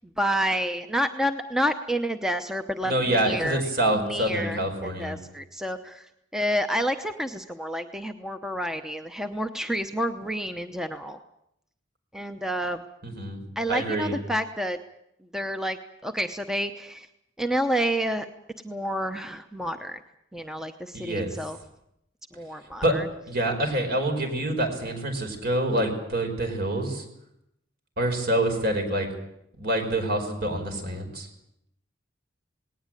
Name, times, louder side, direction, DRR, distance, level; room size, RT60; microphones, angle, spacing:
voice 1, 0.2-3.6 3.9-4.6 5.0-11.2 12.1-12.9 13.6-14.8 15.3-17.1 17.4-18.3 18.6-20.0 20.3-21.6 22.3-23.0, equal, 5° right, 7 dB, 0.8 m, -29 dB
voice 2, 2.8-5.2 13.0-13.4 13.7-14.1 20.9-21.4 22.8-22.9 23.3-27.1 28.0-29.1 29.6-31.3, right 1 dB, 55° right, 5 dB, 5.1 m, -26 dB
19.5 x 18.5 x 9.0 m, 0.79 s
head